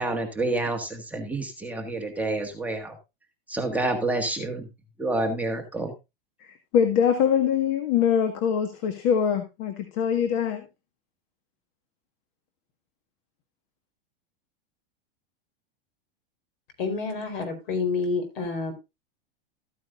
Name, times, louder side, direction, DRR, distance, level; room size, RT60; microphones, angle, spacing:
voice 1, 0.0-2.9 3.5-4.7 5.0-5.9, right 2 dB, 5° right, 1.6 m, -28 dB
voice 2, 6.7-10.6, left 8 dB, 50° left, 1.7 m, -23 dB
voice 3, 16.8-18.7, left 4 dB, 70° left, 4.4 m, -28 dB
14.0 x 9.2 x 2.5 m
supercardioid pair, 135°, 29 cm